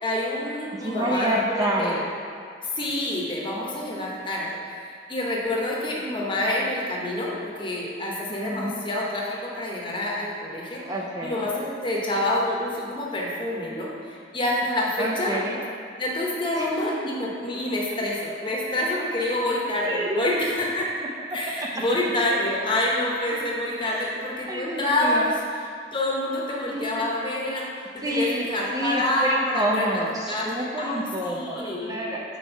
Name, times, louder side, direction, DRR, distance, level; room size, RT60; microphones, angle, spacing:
voice 1, 0.0-2.0 2.6-10.8 11.2-15.4 16.0-20.9 21.3-25.3 25.9-29.9 30.3-32.0, left 1 dB, 30° left, -3 dB, 0.9 m, -27 dB
voice 2, 0.8-2.1 8.3-8.8 10.8-11.5 15.0-15.6 16.6-17.0 19.9-20.4 21.6-21.8 23.8-24.1 24.5-25.3 26.7-27.1 28.0-32.4, right 1 dB, 20° right, -2 dB, 0.4 m, -28 dB
4.5 x 4.4 x 5.4 m, 2.2 s
head